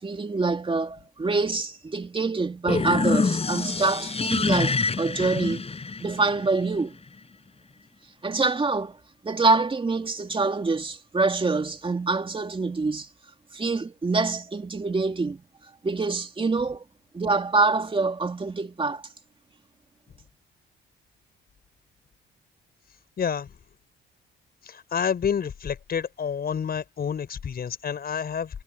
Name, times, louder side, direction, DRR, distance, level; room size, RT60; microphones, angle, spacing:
voice 1, 0.0-5.7 6.0-6.9 8.2-9.0 9.2-13.1 13.5-15.4 15.8-16.8 17.1-19.0, right 3 dB, 25° right, 2.8 m, -25 dB
sound 1, 2.6-6.6, left 4 dB, 30° left, 5.7 m, -26 dB
voice 2, 23.2-23.5 24.7-28.6, left 7 dB, 50° left, 5.3 m, -29 dB
cardioid pair, 90°, 20 cm